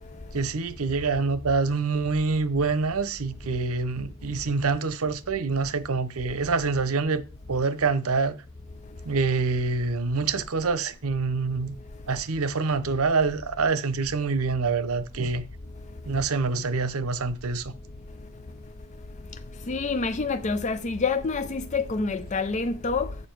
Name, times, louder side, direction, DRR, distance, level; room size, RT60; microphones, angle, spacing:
voice 1, 0.3-7.2 7.5-8.3 9.0-11.8 12.1-15.5 16.0-17.7, right 4 dB, 75° right, 0.8 m, -26 dB
voice 2, 19.7-23.2, left 4 dB, 35° left, 0.5 m, -27 dB
8.6 x 6.8 x 4.6 m
head